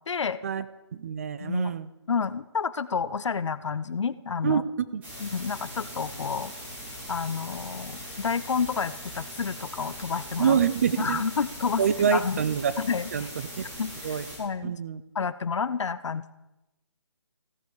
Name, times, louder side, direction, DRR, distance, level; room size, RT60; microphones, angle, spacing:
voice 1, 0.1-0.4 1.4-1.8 2.1-4.6 5.2-6.5 7.1-10.6 11.0-11.8 12.1-12.4 12.8-13.3 13.8-14.7 15.1-16.3, left 5 dB, 80° left, 16 dB, 0.6 m, -30 dB
voice 2, 0.9-1.9 4.4-4.6 4.9-5.0 10.4-11.2 11.8-12.7 13.1-13.6 14.0-14.2 14.6-15.0, right 7 dB, 30° right, 14 dB, 0.4 m, -26 dB
sound 1, 5.0-14.4, equal, 10° right, 2.7 m, -40 dB
15.5 x 8.1 x 4.8 m, 0.98 s
hypercardioid pair, 160°, 15 cm